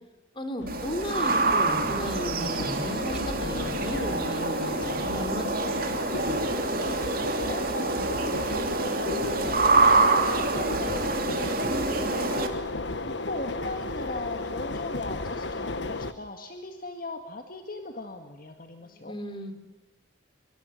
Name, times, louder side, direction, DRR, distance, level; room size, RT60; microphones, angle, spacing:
voice 1, 0.4-5.8 11.9-12.7 18.8-19.5, left 1 dB, 25° left, 8 dB, 3.5 m, -35 dB
sound 1, 0.6-16.1, left 2 dB, 65° left, 1.4 m, -34 dB
sound 2, 0.7-12.5, right 3 dB, 50° right, 3.0 m, -26 dB
voice 2, 6.8-12.6 13.3-19.2, left 2 dB, 45° left, 5 dB, 2.0 m, -39 dB
26.0 x 23.5 x 7.1 m, 1.1 s
head